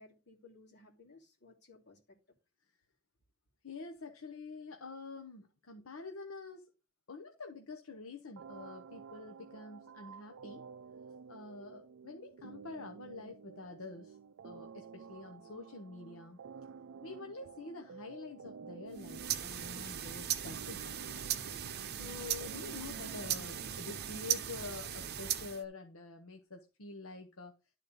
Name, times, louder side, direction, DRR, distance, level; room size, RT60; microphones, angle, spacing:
voice 1, 0.0-2.2, left 3 dB, 55° left, 2.8 m, -59 dB
voice 2, 3.6-6.7 7.1-10.6 11.3-14.2 14.4-16.4 17.0-21.6 21.9-27.6, left 3 dB, 75° left, 1.0 m, -47 dB
sound 1, 8.4-24.4, right 6 dB, 70° right, 0.4 m, -52 dB
sound 2, 18.9-25.6, right 10 dB, 50° right, 0.8 m, -38 dB
11.5 x 4.2 x 5.2 m
head